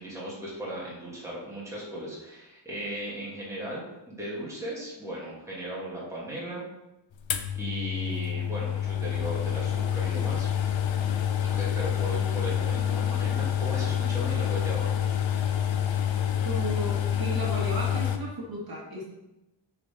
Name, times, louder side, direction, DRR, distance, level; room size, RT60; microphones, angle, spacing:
voice 1, 0.0-3.8 4.1-6.6 7.5-10.5 11.5-14.9, equal, 5° right, -7 dB, 2.4 m, -36 dB
sound 1, 7.3-18.2, left 9 dB, 90° left, 0.8 m, -27 dB
voice 2, 16.4-19.1, right 1 dB, 50° right, -4 dB, 1.7 m, -34 dB
6.7 x 4.8 x 5.2 m, 0.94 s
wide cardioid pair, 165°, 44 cm